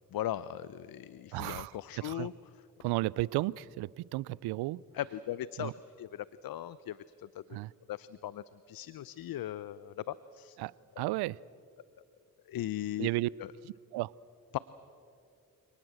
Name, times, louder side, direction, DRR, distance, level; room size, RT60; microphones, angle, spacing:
voice 1, 0.1-2.3 4.9-5.7 6.0-7.6 7.9-10.6 12.5-13.1 13.4-13.5 14.5-14.6, left 12 dB, 65° left, 17 dB, 0.7 m, -38 dB
voice 2, 1.3-2.3 2.8-4.8 5.6-5.7 7.5-7.7 10.6-11.4 13.0-13.3 13.9-14.1, right 19 dB, 85° right, 24 dB, 0.5 m, -33 dB
27.5 x 19.0 x 7.6 m, 2.4 s
supercardioid pair, 40°, 38 cm